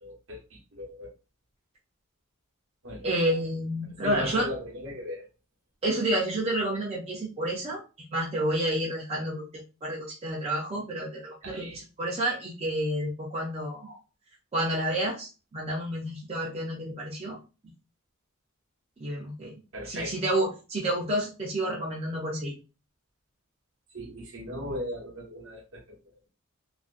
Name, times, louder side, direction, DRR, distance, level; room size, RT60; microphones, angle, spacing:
voice 1, 0.0-1.1 2.8-3.1 4.0-5.3 11.4-11.8 19.7-20.1 23.9-26.0, equal, 60° right, 1 dB, 0.7 m, -37 dB
voice 2, 3.0-4.5 5.8-14.0 14.5-17.4 19.0-19.5 19.9-22.5, right 1 dB, 25° right, -3 dB, 0.4 m, -30 dB
2.4 x 2.1 x 2.4 m, 0.31 s
head